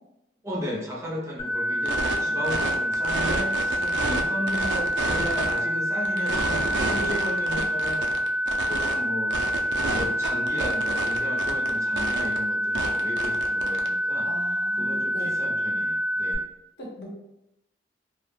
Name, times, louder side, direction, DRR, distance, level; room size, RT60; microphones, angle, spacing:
voice 1, 0.4-8.1 8.6-9.4 9.6-14.3 14.7-16.4, equal, 15° right, -4 dB, 0.4 m, -35 dB
sound 1, 1.4-16.3, equal, 40° left, 0.4 m, -27 dB
sound 2, 1.9-2.2 2.4-4.2 4.5-5.6 6.0-8.9 9.3-11.7 11.9-12.4 12.7-13.9, right 3 dB, 85° right, 0.4 m, -30 dB
voice 2, 3.8-4.1 6.9-7.2 14.2-15.4 16.8-17.1, equal, 70° left, -3 dB, 0.8 m, -38 dB
2.2 x 2.0 x 3.0 m, 0.87 s
head